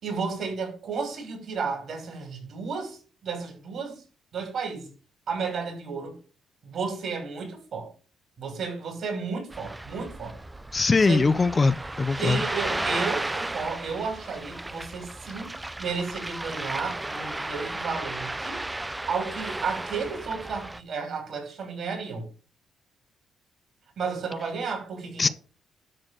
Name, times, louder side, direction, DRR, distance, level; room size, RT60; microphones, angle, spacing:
voice 1, 0.0-4.0 4.3-4.9 5.3-6.2 6.6-7.9 8.4-10.4 11.1-11.3 12.2-18.7 19.1-22.3 24.0-25.3, right 5 dB, 60° right, 6.0 m, -33 dB
Ocean, 9.5-20.8, right 2 dB, 15° right, 0.6 m, -34 dB
voice 2, 10.7-12.4 25.2-25.3, left 4 dB, 30° left, 0.6 m, -21 dB
12.0 x 4.3 x 6.4 m
cardioid pair, 90°, 0 cm